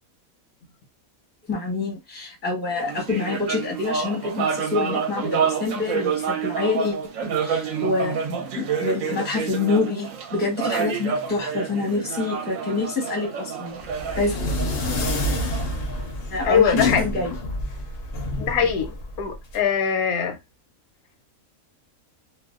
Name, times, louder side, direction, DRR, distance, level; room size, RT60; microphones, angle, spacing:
voice 1, 1.5-7.0 7.2-13.8 14.2-14.3 16.3-17.3 18.4-18.7, left 3 dB, 10° left, 0.6 m, -27 dB
sound 1, 2.7-16.4, right 6 dB, 75° right, 0.9 m, -29 dB
sound 2, 13.8-19.6, left 1 dB, 60° left, 0.6 m, -28 dB
voice 2, 16.4-17.0 18.5-20.4, left 7 dB, 85° left, 1.0 m, -22 dB
2.5 x 2.1 x 2.3 m
omnidirectional pair, 1.5 m